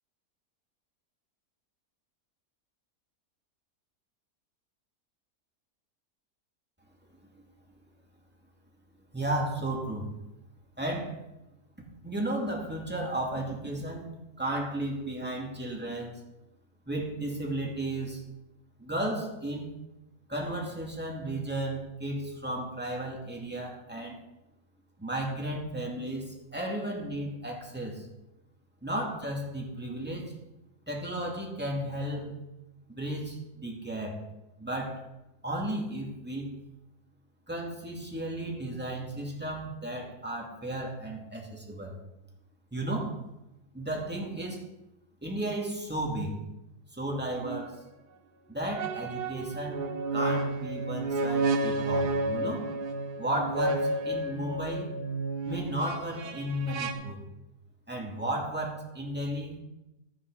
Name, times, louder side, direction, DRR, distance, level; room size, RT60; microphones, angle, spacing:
voice 1, 9.1-10.1 10.8-11.1 12.0-14.1 14.4-16.2 16.9-18.2 18.8-19.7 20.3-24.2 25.0-28.1 28.8-30.3 30.9-32.3 32.9-34.2 34.6-35.0 35.4-36.5 37.5-42.0 42.7-43.1 43.7-44.6 45.2-46.4 46.9-47.8 48.5-49.8 50.1-52.7 53.2-54.9 55.4-57.2 57.9-59.6, right 1 dB, 5° right, -1 dB, 2.3 m, -34 dB
sound 1, 47.4-47.6 48.7-56.9, right 2 dB, 85° right, 1.6 m, -31 dB
12.5 x 9.6 x 4.1 m, 0.93 s
omnidirectional pair, 1.7 m